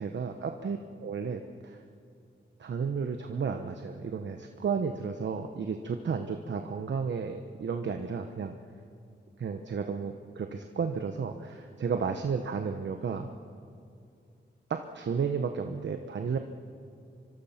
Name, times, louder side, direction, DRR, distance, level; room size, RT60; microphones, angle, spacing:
voice 1, 0.0-1.8 2.6-8.6 9.4-13.3 14.7-16.4, right 6 dB, 70° right, 6 dB, 1.1 m, -33 dB
25.0 x 24.5 x 5.9 m, 2.4 s
cardioid pair, 70°, 19 cm